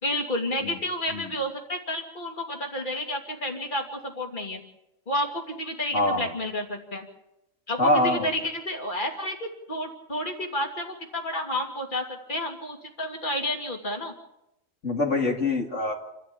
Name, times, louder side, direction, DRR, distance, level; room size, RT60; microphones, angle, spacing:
voice 1, 0.0-4.6 5.1-7.1 7.7-14.1, left 1 dB, 35° left, 2 dB, 3.0 m, -30 dB
voice 2, 5.9-6.3 7.8-8.3 14.8-15.9, left 2 dB, 65° left, 0 dB, 2.8 m, -24 dB
28.5 x 13.0 x 8.7 m, 0.87 s
omnidirectional pair, 1.4 m